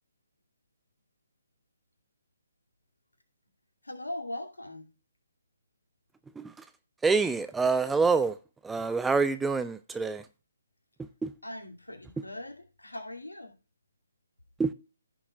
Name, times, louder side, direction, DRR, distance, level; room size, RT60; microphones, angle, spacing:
voice 1, 3.8-4.9 11.4-13.5, left 1 dB, 75° left, 2.5 m, -40 dB
voice 2, 7.0-8.4 8.6-10.2 11.2-11.3 14.6-14.7, right 4 dB, 5° right, 0.4 m, -26 dB
14.5 x 7.0 x 2.4 m
figure-of-eight pair, 140°, 0 cm